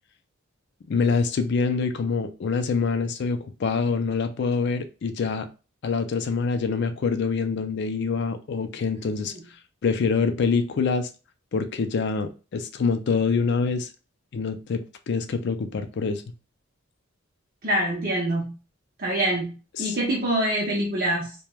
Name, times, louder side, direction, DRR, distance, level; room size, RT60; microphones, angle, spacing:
voice 1, 0.9-5.5 5.8-11.1 11.5-13.9 14.3-16.2 19.8-20.0, left 4 dB, 55° left, 0.3 m, -25 dB
voice 2, 17.6-18.6 19.0-21.3, right 1 dB, 45° right, 0.7 m, -25 dB
3.1 x 2.2 x 2.2 m
head